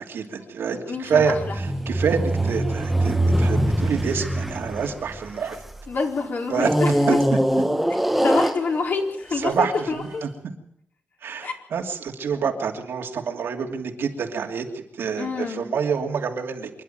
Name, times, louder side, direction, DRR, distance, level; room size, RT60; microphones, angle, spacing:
voice 1, 0.0-5.6 6.5-6.7 7.1-7.4 9.4-10.1 11.2-16.7, right 6 dB, 80° right, 3 dB, 2.8 m, -27 dB
voice 2, 0.9-1.6 5.9-7.2 8.2-10.2 11.4-11.5 15.2-15.6, left 4 dB, 60° left, 2 dB, 4.2 m, -27 dB
sound 1, 1.1-5.8 6.6-9.1 9.8-9.9, right 1 dB, 5° right, 1.2 m, -23 dB
26.0 x 11.5 x 9.2 m, 0.69 s
wide cardioid pair, 120°, 4 cm